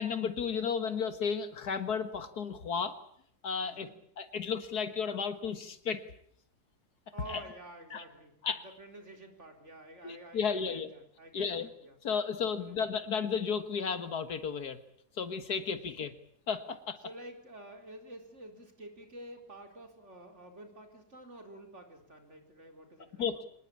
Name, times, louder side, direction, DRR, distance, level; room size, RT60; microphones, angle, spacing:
voice 1, 0.0-3.0 3.4-3.9 4.2-6.0 7.3-7.4 7.9-8.0 8.4-8.6 10.0-10.9 11.3-11.7 12.0-14.8 15.2-16.1 16.5-17.0 23.2-23.4, left 6 dB, 80° left, 10 dB, 2.2 m, -33 dB
voice 2, 3.6-4.0 7.1-8.4 8.8-12.0 12.6-12.8 17.0-23.3, right 1 dB, 45° right, 4 dB, 4.5 m, -49 dB
25.5 x 20.0 x 8.6 m, 0.67 s
omnidirectional pair, 1.6 m